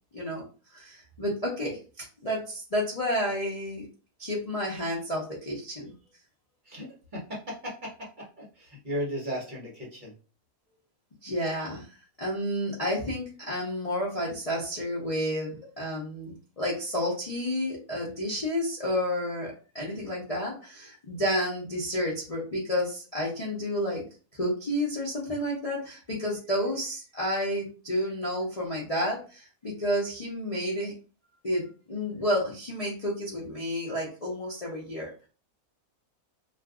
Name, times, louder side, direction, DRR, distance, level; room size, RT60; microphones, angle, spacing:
voice 1, 0.1-0.4 0.7-1.8 2.2-3.9 4.2-5.9 11.2-11.9 12.2-24.0 24.3-30.9 31.4-35.1, equal, 35° left, -5 dB, 0.6 m, -30 dB
voice 2, 6.7-10.1, equal, 40° right, -3 dB, 0.9 m, -36 dB
2.5 x 2.4 x 3.5 m, 0.36 s
omnidirectional pair, 1.5 m